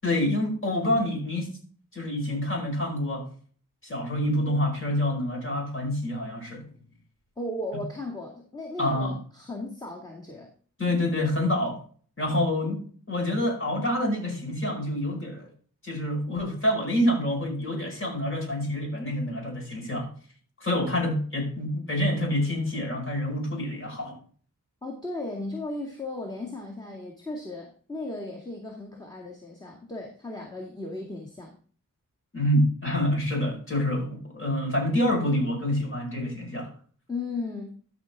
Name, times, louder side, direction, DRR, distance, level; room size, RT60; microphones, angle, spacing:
voice 1, 0.0-1.5 1.9-3.3 3.8-6.6 8.8-9.2 10.8-11.8 12.2-12.8 13.1-15.5 15.8-20.1 20.6-24.2 32.3-36.7, left 1 dB, 35° left, 5.1 m, -27 dB
voice 2, 7.4-10.5 24.8-31.6 37.1-37.7, left 2 dB, 10° left, 2.3 m, -36 dB
13.0 x 5.9 x 3.6 m
wide cardioid pair, 75°, 34 cm